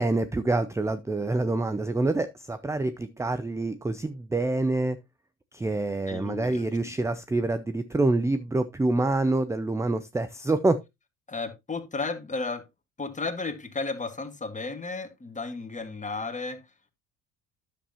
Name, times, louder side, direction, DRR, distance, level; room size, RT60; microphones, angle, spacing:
voice 1, 0.0-5.0 5.5-10.8, right 2 dB, 10° right, 0.5 m, -26 dB
voice 2, 6.1-6.9 11.3-12.6 13.0-16.6, left 3 dB, 20° left, 1.6 m, -34 dB
10.0 x 7.2 x 2.8 m
hypercardioid pair, 65°, 37 cm